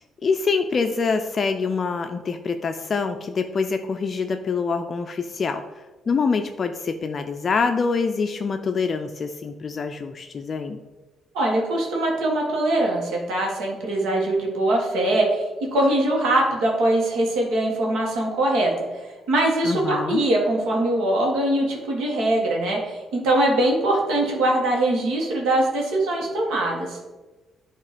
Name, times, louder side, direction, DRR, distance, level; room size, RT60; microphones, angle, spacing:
voice 1, 0.0-5.6 6.1-10.8 19.6-20.2, left 5 dB, 40° left, 7 dB, 0.3 m, -25 dB
voice 2, 11.3-15.4 15.7-18.7 19.3-27.0, right 1 dB, 90° right, -1 dB, 1.5 m, -22 dB
8.2 x 3.0 x 5.0 m, 1.2 s
cardioid pair, 115°, 0 cm